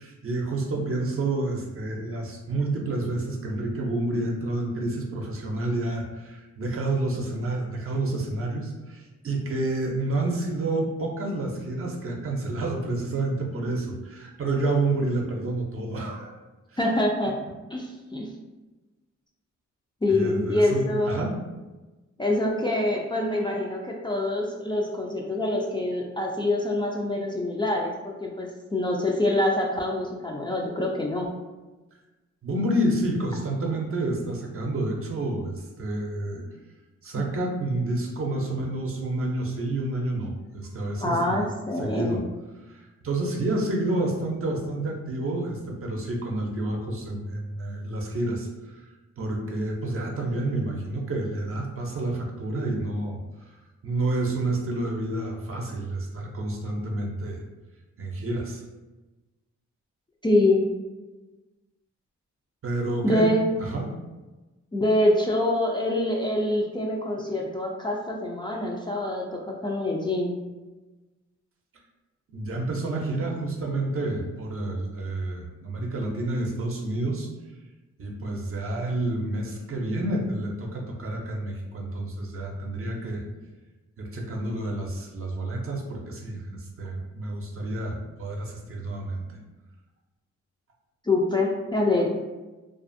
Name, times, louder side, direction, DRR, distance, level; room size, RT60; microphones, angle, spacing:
voice 1, 0.0-16.3 20.1-21.4 32.4-36.4 37.0-41.5 41.8-42.2 42.7-48.9 49.2-53.5 53.8-57.4 58.0-58.6 62.6-63.3 63.6-63.8 72.3-77.3 78.0-83.2 84.0-89.4, right 2 dB, 50° right, 0 dB, 0.6 m, -29 dB
voice 2, 16.8-17.4 17.7-18.3 20.0-21.2 22.2-31.3 37.1-37.2 41.0-42.2 60.2-60.7 63.0-63.4 64.7-70.4 91.0-92.1, left 1 dB, 15° left, -2 dB, 0.3 m, -25 dB
2.5 x 2.4 x 2.5 m, 1.1 s
cardioid pair, 75°, 29 cm